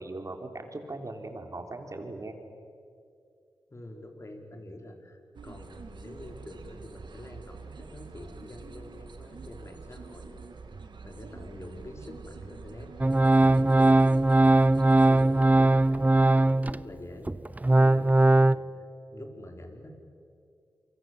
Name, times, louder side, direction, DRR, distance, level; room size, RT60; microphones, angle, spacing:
voice 1, 0.0-2.3, right 2 dB, 40° right, 4 dB, 4.0 m, -39 dB
voice 2, 3.7-10.5 10.7-17.3 17.8-18.9 19.1-19.9, left 1 dB, 35° left, 4 dB, 4.7 m, -46 dB
sound 1, 5.3-16.2, right 4 dB, 70° right, 2.4 m, -46 dB
Organ, 13.0-16.8 17.3-18.5, right 2 dB, 20° right, 0.7 m, -20 dB
27.0 x 24.0 x 8.0 m, 2.4 s
cardioid pair, 50°, 8 cm